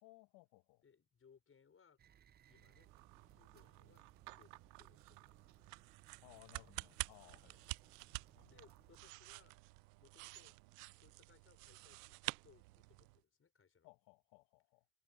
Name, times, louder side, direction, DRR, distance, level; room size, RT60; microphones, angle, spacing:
voice 1, 0.0-0.8 6.2-7.7 8.4-8.7 13.8-14.9, left 22 dB, 60° left, 1.6 m, -63 dB
voice 2, 0.8-2.0 2.5-2.9 3.3-4.0 4.3-5.8 7.4-7.6 8.5-9.6 10.0-10.5 11.0-13.9, left 6 dB, 25° left, 5.9 m, -69 dB
sound 1, 2.0-9.1, right 9 dB, 20° right, 0.5 m, -67 dB
sound 2, 2.4-13.2, right 25 dB, 75° right, 0.6 m, -50 dB
sound 3, 2.9-10.8, right 21 dB, 60° right, 2.4 m, -65 dB
hypercardioid pair, 90°, 48 cm